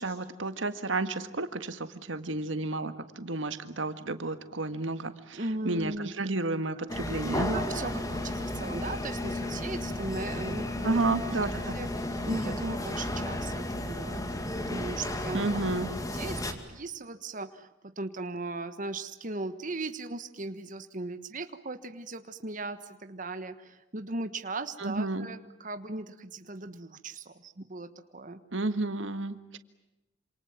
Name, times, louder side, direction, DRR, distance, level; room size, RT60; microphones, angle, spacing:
voice 1, 0.0-7.5 10.8-11.8 15.3-15.9 24.8-25.3 28.5-29.6, right 2 dB, 90° right, 10 dB, 1.8 m, -31 dB
voice 2, 5.3-6.1 7.4-11.0 11.7-15.5 16.1-17.7 18.0-28.4, right 2 dB, 45° right, 9 dB, 1.4 m, -38 dB
sound 1, 6.9-16.5, left 1 dB, 20° left, 2.4 m, -33 dB
28.0 x 27.0 x 7.4 m, 0.91 s
head